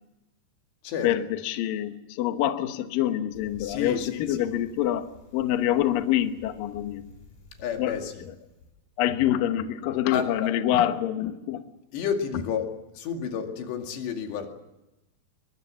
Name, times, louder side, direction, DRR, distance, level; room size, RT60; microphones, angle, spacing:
voice 1, 1.0-5.1 5.3-7.0 7.8-8.0 9.0-11.7, left 12 dB, 65° left, 8 dB, 2.5 m, -26 dB
Bicycle, 3.3-8.7, left 2 dB, 45° left, 6.7 m, -52 dB
voice 2, 3.6-4.5 7.6-8.2 10.1-10.5 11.9-12.7 12.9-14.5, left 7 dB, 90° left, 4 dB, 4.6 m, -31 dB
23.0 x 23.0 x 7.5 m, 0.97 s
omnidirectional pair, 4.8 m